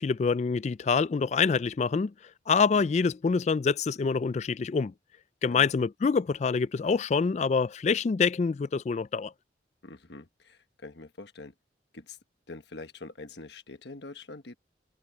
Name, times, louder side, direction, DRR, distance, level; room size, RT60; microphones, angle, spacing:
voice 1, 0.0-2.1 2.5-4.9 5.4-9.3, left 5 dB, 40° left, 0.3 m, -26 dB
voice 2, 9.8-11.5 11.9-12.2 12.5-14.5, left 3 dB, 70° left, 1.4 m, -45 dB
head